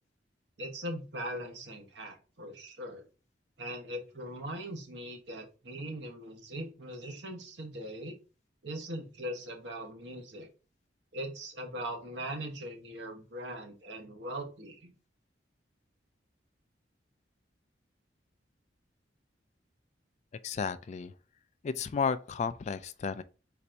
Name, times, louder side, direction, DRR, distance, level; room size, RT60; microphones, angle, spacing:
voice 1, 0.6-3.0 3.6-8.1 8.6-10.5 11.1-14.9, right 1 dB, 70° right, 1.1 m, -40 dB
voice 2, 20.4-21.1 21.6-23.2, left 5 dB, 40° left, 0.3 m, -33 dB
4.1 x 2.6 x 4.4 m
head